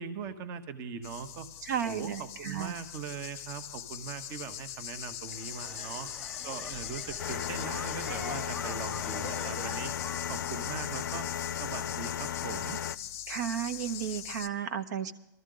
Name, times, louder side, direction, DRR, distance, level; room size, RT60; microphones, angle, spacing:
voice 1, 0.0-1.5 1.8-6.1 6.4-9.9 10.3-11.3 11.6-12.8, right 6 dB, 25° right, 9 dB, 0.8 m, -40 dB
sound 1, 1.0-14.5, left 11 dB, 25° left, 0.8 m, -41 dB
voice 2, 1.6-2.7 13.3-15.1, right 8 dB, 60° right, 9 dB, 0.9 m, -33 dB
sound 2, 5.3-10.4, left 3 dB, ahead, 1.3 m, -44 dB
sound 3, 7.2-13.0, left 9 dB, 85° left, 0.5 m, -36 dB
19.0 x 13.5 x 3.8 m, 0.94 s
hypercardioid pair, 160°, 10 cm